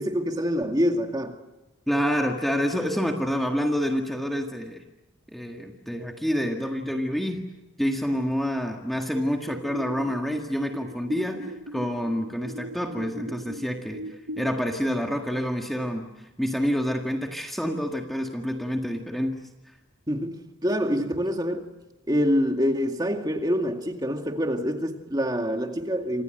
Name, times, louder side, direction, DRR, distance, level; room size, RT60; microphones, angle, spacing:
voice 1, 0.0-1.4 20.1-21.7 22.1-26.2, equal, 20° right, 2.1 m, -26 dB
voice 2, 1.9-4.8 5.3-7.4 7.8-14.0 14.4-16.1 16.4-19.4, equal, ahead, 1.8 m, -27 dB
sound 1, 9.5-14.5, equal, 60° right, 1.0 m, -39 dB
29.0 x 26.5 x 7.9 m
head